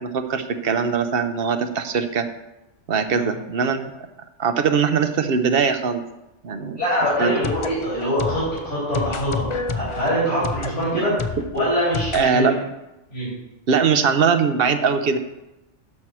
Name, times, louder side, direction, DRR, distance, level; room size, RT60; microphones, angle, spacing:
voice 1, 0.0-2.3 2.9-3.9 4.4-6.0 6.4-6.8 7.2-7.4 10.9-11.0 12.1-12.6 13.7-15.2, right 6 dB, 55° right, 9 dB, 0.9 m, -21 dB
voice 2, 6.8-9.4 9.7-11.1 11.5-12.5 13.1-13.3, equal, 75° left, -10 dB, 4.7 m, -23 dB
sound 1, 7.1-12.3, left 4 dB, 50° left, 0.3 m, -30 dB
12.0 x 4.5 x 6.0 m, 0.96 s
omnidirectional pair, 1.2 m